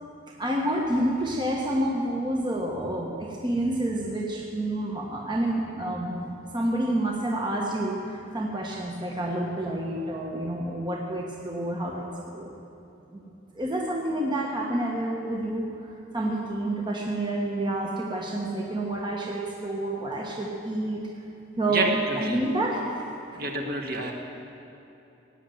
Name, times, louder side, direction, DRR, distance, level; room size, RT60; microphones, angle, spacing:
voice 1, 0.4-6.3 6.5-12.1 12.3-12.5 13.1-13.2 13.5-15.7 16.1-21.0 21.6-22.8 23.3-23.4, right 1 dB, 25° right, -1 dB, 1.2 m, -28 dB
voice 2, 21.7-22.4 23.4-24.1, right 2 dB, 50° right, 1 dB, 1.7 m, -28 dB
17.5 x 9.2 x 7.8 m, 2.9 s
head